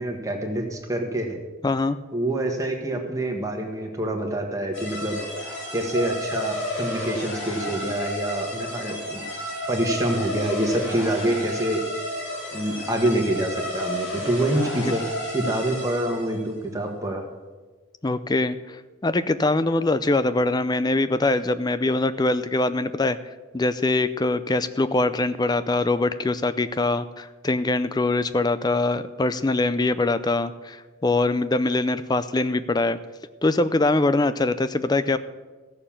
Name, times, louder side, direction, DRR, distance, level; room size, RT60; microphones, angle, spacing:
voice 1, 0.0-1.4 2.1-5.2 5.7-9.2 9.7-11.8 12.5-15.0 15.3-17.2, right 1 dB, 15° right, 2 dB, 1.5 m, -26 dB
voice 2, 1.6-2.0 18.0-18.8 19.0-23.2 23.5-33.0 33.4-35.2, left 2 dB, 20° left, 13 dB, 0.4 m, -23 dB
sound 1, 4.7-16.4, equal, 75° left, 4.7 m, -32 dB
15.0 x 6.8 x 7.2 m, 1.3 s
head